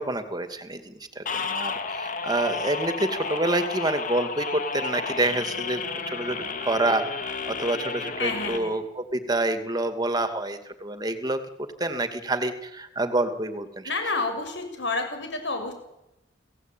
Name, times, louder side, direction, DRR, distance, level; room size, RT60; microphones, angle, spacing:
voice 1, 0.0-13.9, right 2 dB, 20° right, 9 dB, 2.4 m, -28 dB
sound 1, 1.3-8.6, left 5 dB, 45° left, 2.3 m, -32 dB
voice 2, 8.2-8.8 13.8-15.7, left 3 dB, 70° left, 6 dB, 6.9 m, -29 dB
29.0 x 17.5 x 9.2 m, 0.91 s
head